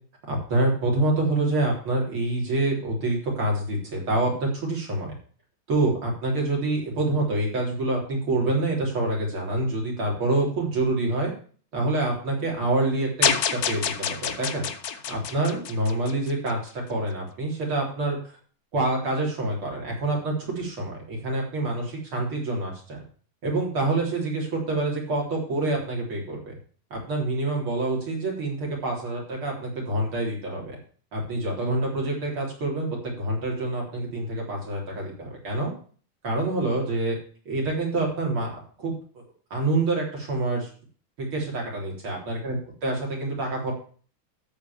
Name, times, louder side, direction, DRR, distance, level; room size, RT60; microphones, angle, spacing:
voice 1, 0.3-5.1 5.7-11.3 11.7-14.7 15.1-16.6 16.9-18.2 18.7-23.0 23.4-26.6 26.9-30.8 31.1-35.7 36.2-37.2 37.5-38.5 38.8-39.2 39.5-40.7 41.2-42.5 42.8-43.7, right 2 dB, 80° right, -2 dB, 4.7 m, -26 dB
sound 1, 13.2-16.5, left 8 dB, 55° left, 1.2 m, -27 dB
14.0 x 4.6 x 7.1 m, 0.43 s
omnidirectional pair, 2.3 m